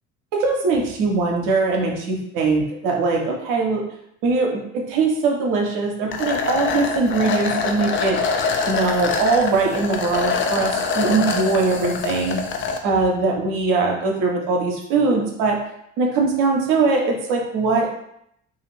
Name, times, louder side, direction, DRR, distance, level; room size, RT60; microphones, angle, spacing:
voice 1, 0.3-3.8 4.2-8.2 8.7-12.4 12.8-15.6 16.0-17.9, right 3 dB, 60° right, 1 dB, 0.7 m, -21 dB
sound 1, 6.1-12.8, left 5 dB, 35° left, 0.4 m, -24 dB
2.5 x 2.4 x 3.1 m, 0.74 s
figure-of-eight pair, 45°, 36 cm